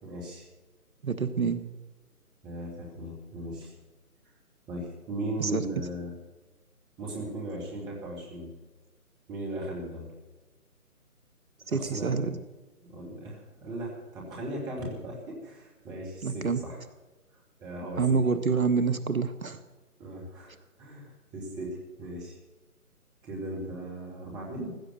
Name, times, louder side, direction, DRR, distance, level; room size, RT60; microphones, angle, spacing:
voice 1, 0.0-0.5 2.4-3.7 4.7-6.1 7.0-8.5 9.3-10.1 11.6-12.2 12.8-16.8 17.3-18.0 20.0-22.4 23.2-24.7, right 1 dB, 10° right, -2 dB, 2.3 m, -37 dB
voice 2, 1.0-1.6 5.4-5.6 11.7-12.4 16.2-16.6 18.0-19.6, right 5 dB, 65° right, 12 dB, 1.3 m, -27 dB
16.0 x 13.0 x 6.6 m, 1.2 s
figure-of-eight pair, 145°, 44 cm